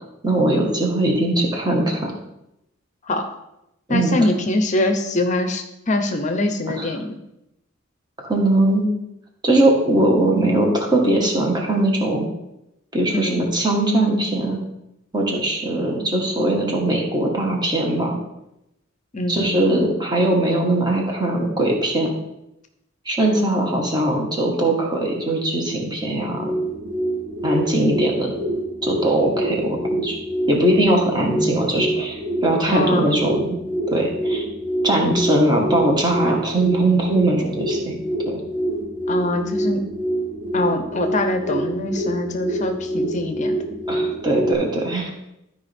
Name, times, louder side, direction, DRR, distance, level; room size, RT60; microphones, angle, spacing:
voice 1, 0.2-2.1 3.9-4.1 6.8-6.9 8.2-8.9 9.4-12.3 12.9-14.6 15.1-18.2 19.3-22.1 23.0-26.6 27.4-28.3 28.8-30.2 30.5-33.6 33.9-34.4 34.8-38.0 38.3-38.4 43.9-45.1, right 1 dB, 20° right, 0 dB, 1.5 m, -20 dB
voice 2, 3.9-7.1 13.1-13.4 19.1-19.4 32.7-33.1 39.1-39.8 40.5-43.6, left 2 dB, 40° left, 6 dB, 0.7 m, -23 dB
sound 1, 26.2-44.5, right 1 dB, 40° right, 3.4 m, -26 dB
12.5 x 4.8 x 3.5 m, 0.87 s
head